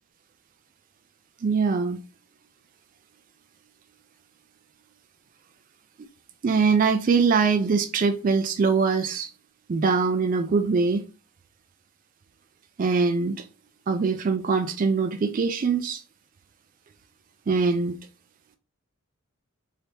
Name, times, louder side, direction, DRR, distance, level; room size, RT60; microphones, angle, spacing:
voice 1, 1.4-2.0 6.4-9.3 9.7-11.1 12.8-13.5 13.9-16.0 17.5-18.0, right 4 dB, 40° right, 0.3 m, -23 dB
3.3 x 2.8 x 2.8 m
head